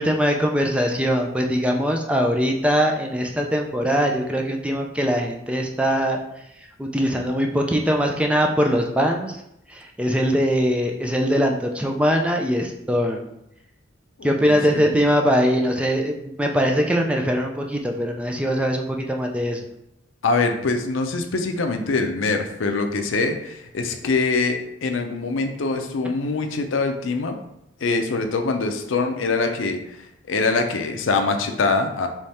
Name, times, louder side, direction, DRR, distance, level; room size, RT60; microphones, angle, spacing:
voice 1, 0.0-6.2 6.5-9.4 9.7-13.3 14.2-19.7, equal, 5° right, 2 dB, 0.3 m, -22 dB
voice 2, 14.2-14.8 20.2-27.4 27.8-32.1, left 3 dB, 85° left, 6 dB, 0.5 m, -24 dB
3.5 x 3.1 x 4.2 m, 0.82 s
head